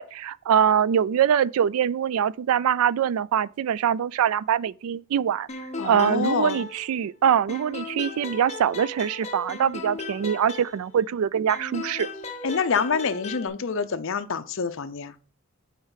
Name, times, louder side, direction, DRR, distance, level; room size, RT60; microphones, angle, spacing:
voice 1, 0.0-5.5 5.8-12.1, right 8 dB, 75° right, 0.3 m, -23 dB
sound 1, 5.5-7.2 7.5-11.1 11.5-13.5, left 3 dB, 30° left, 1.0 m, -37 dB
voice 2, 5.8-6.6 12.4-15.1, left 5 dB, 60° left, 0.6 m, -26 dB
5.6 x 4.7 x 5.7 m
head